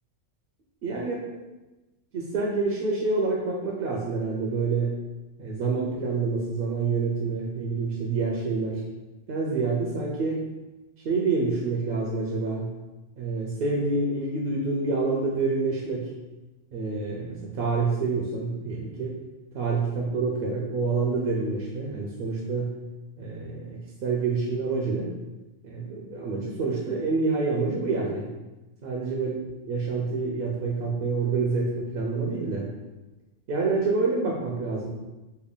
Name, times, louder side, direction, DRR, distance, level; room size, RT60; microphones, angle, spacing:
voice 1, 0.8-1.2 2.1-4.9 5.4-8.8 9.3-10.4 11.0-12.7 13.2-16.1 16.7-19.2 19.5-22.7 23.2-25.1 25.6-28.3 28.8-29.4 29.7-32.6 33.5-34.9, right 4 dB, 60° right, -2 dB, 0.6 m, -27 dB
3.3 x 2.2 x 3.6 m, 1.1 s
omnidirectional pair, 1.3 m